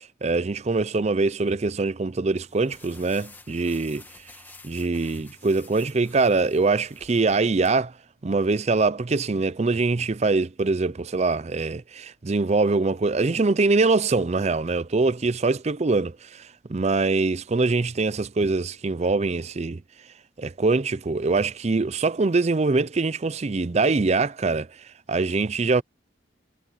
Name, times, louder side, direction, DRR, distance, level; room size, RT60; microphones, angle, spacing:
voice 1, 0.0-4.0 4.6-7.9 8.2-16.4 16.7-19.8 20.4-24.7 25.1-25.8, right 3 dB, 35° right, 0.5 m, -23 dB
sound 1, 2.4-7.7, left 3 dB, 10° left, 1.4 m, -50 dB
head